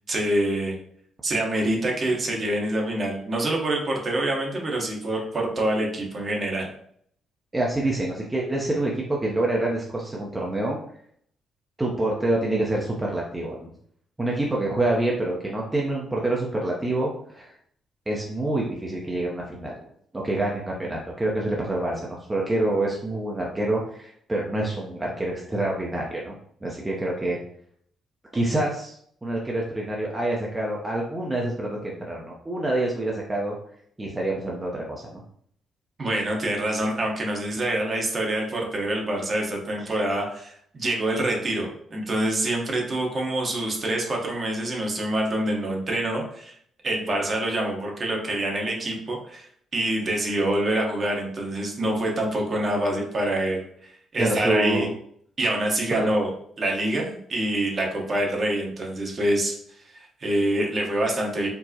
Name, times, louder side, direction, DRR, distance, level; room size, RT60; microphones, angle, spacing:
voice 1, 0.1-0.8 1.2-6.7 36.0-46.6 46.8-49.5 49.7-54.9 55.4-56.3 56.6-59.5 59.9-61.5, right 1 dB, 40° right, 0 dB, 0.9 m, -26 dB
voice 2, 7.5-10.8 11.8-13.7 14.2-17.5 18.1-19.8 20.1-26.4 26.6-27.4 28.3-33.6 34.0-35.2 39.8-39.9 54.2-54.9 55.9-56.1, right 1 dB, 15° right, -3 dB, 0.6 m, -27 dB
4.5 x 2.0 x 2.8 m, 0.65 s
cardioid pair, 90°, 0 cm